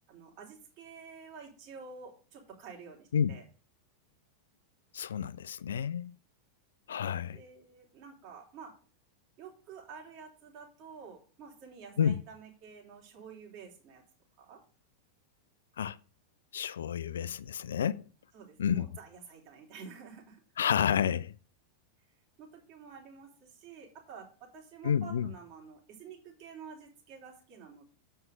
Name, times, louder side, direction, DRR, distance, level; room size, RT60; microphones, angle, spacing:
voice 1, 0.1-3.4 7.3-8.7 9.4-14.0 14.4-14.6 18.3-20.4 22.4-27.8, right 6 dB, 40° right, 3.4 m, -50 dB
voice 2, 4.9-6.1 6.9-7.4 12.0-12.2 15.8-16.0 16.5-18.1 18.6-18.9 20.6-21.3 24.8-25.3, left 8 dB, 65° left, 0.4 m, -30 dB
7.8 x 5.5 x 6.3 m
figure-of-eight pair, 90°, 0 cm